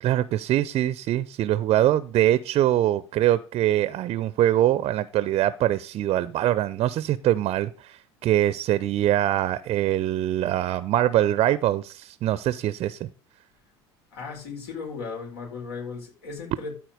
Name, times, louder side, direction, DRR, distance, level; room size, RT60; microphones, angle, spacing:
voice 1, 0.0-13.1, right 13 dB, 45° right, 16 dB, 0.6 m, -23 dB
voice 2, 14.1-16.7, left 4 dB, 70° left, 1 dB, 4.4 m, -36 dB
13.0 x 4.4 x 6.5 m, 0.35 s
figure-of-eight pair, 70°, 14 cm